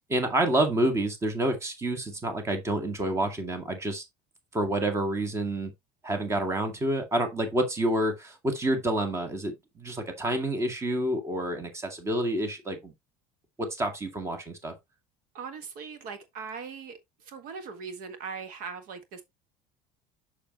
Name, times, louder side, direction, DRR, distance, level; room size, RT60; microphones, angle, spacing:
voice 1, 0.0-4.0 4.5-5.7 6.0-12.9 13.6-14.7, right 1 dB, 15° right, 1.9 m, -28 dB
voice 2, 15.3-17.0 17.2-19.2, right 5 dB, 60° right, 1.6 m, -40 dB
6.8 x 6.5 x 3.0 m
cardioid pair, 140°, 16 cm